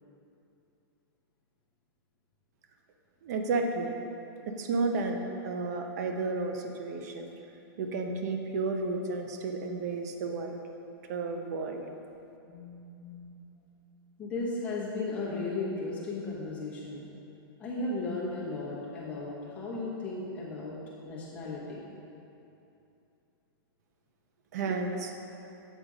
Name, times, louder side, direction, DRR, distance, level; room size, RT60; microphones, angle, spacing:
voice 1, 3.2-3.9 4.5-5.2 5.4-7.3 7.8-10.6 11.1-11.8 24.5-25.1, right 3 dB, 45° right, 4 dB, 0.7 m, -32 dB
voice 2, 12.5-13.3 14.2-17.1 17.6-20.8 21.0-21.9, left 3 dB, 10° left, -7 dB, 1.2 m, -35 dB
8.2 x 5.0 x 4.9 m, 2.8 s
supercardioid pair, 175°, 13 cm